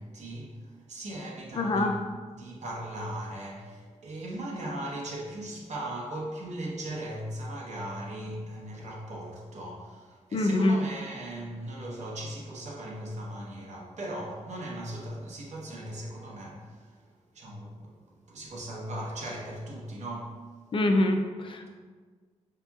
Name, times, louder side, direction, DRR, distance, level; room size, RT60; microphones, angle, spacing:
voice 1, 0.0-2.0 2.4-20.4, right 1 dB, 65° right, -3 dB, 0.8 m, -38 dB
voice 2, 1.5-1.9 10.3-10.8 20.7-21.7, left 2 dB, 45° left, 4 dB, 0.3 m, -25 dB
4.9 x 2.9 x 2.3 m, 1.5 s
wide cardioid pair, 115°, 13 cm